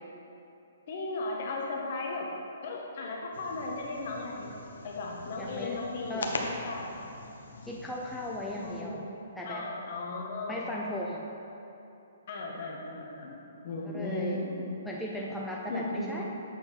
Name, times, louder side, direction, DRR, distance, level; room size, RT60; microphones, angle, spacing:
voice 1, 0.9-2.3 2.6-4.5 4.8-6.9 8.6-9.0 9.4-10.7 12.3-14.7 15.7-16.1, left 2 dB, 50° left, -1 dB, 1.2 m, -36 dB
sound 1, 3.3-8.8, left 3 dB, 80° left, 0.9 m, -41 dB
voice 2, 5.4-6.3 7.6-9.1 9.4-9.7 10.5-11.2 13.8-14.4 14.8-16.2, left 1 dB, ahead, -4 dB, 0.4 m, -37 dB
7.6 x 4.4 x 5.7 m, 2.9 s
hypercardioid pair, 160°, 0 cm